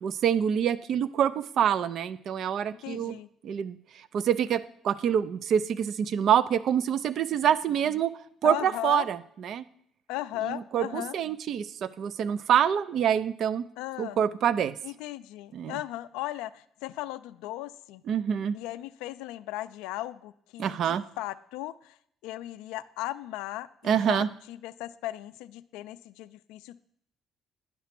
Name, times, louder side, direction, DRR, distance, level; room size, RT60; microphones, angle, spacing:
voice 1, 0.0-3.2 3.4-3.8 4.1-8.1 8.4-9.6 10.4-13.6 14.0-14.7 15.5-15.8 18.1-18.6 20.6-21.0 23.8-24.3, right 9 dB, 65° right, 16 dB, 0.4 m, -26 dB
voice 2, 2.8-3.3 8.4-9.1 10.1-11.1 13.8-14.2 14.8-18.0 18.5-22.0 22.2-26.8, left 15 dB, 90° left, 13 dB, 0.3 m, -37 dB
9.5 x 5.8 x 5.9 m, 0.69 s
cardioid pair, 85°, 0 cm